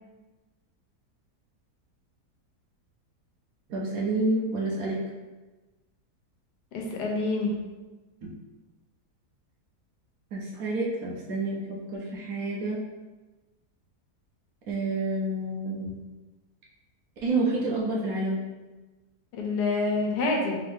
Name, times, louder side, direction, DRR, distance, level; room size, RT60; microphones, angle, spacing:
voice 1, 3.7-5.0 8.2-8.3 10.3-12.8 14.7-16.0 17.2-18.4, right 2 dB, 65° right, -4 dB, 1.1 m, -29 dB
voice 2, 6.7-7.6 19.4-20.6, left 3 dB, 80° left, 0 dB, 1.3 m, -27 dB
3.6 x 2.6 x 3.4 m, 1.2 s
omnidirectional pair, 1.7 m